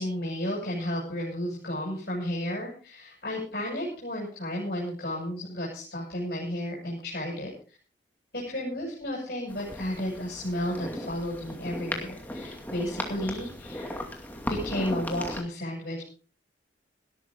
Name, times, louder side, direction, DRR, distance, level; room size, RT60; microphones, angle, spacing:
voice 1, 0.0-7.5 8.3-14.1 14.5-16.0, left 1 dB, 60° left, -3 dB, 6.6 m, -33 dB
sound 1, 9.5-15.4, left 1 dB, 10° left, 2.4 m, -37 dB
18.5 x 13.0 x 3.8 m, 0.38 s
head